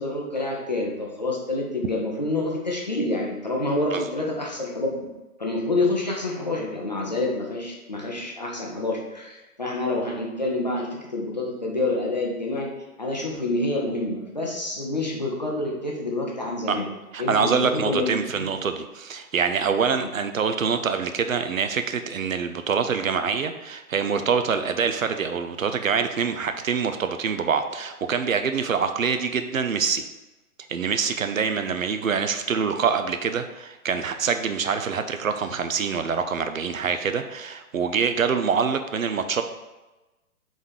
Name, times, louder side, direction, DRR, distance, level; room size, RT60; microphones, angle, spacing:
voice 1, 0.0-5.0 5.4-12.7 13.0-16.9 17.2-18.1 18.4-18.5, left 2 dB, 30° left, -2 dB, 0.5 m, -27 dB
voice 2, 17.1-30.0 30.7-39.4, right 6 dB, 65° right, 8 dB, 0.5 m, -25 dB
4.0 x 3.9 x 3.1 m, 1.1 s
figure-of-eight pair, 130°, 45 cm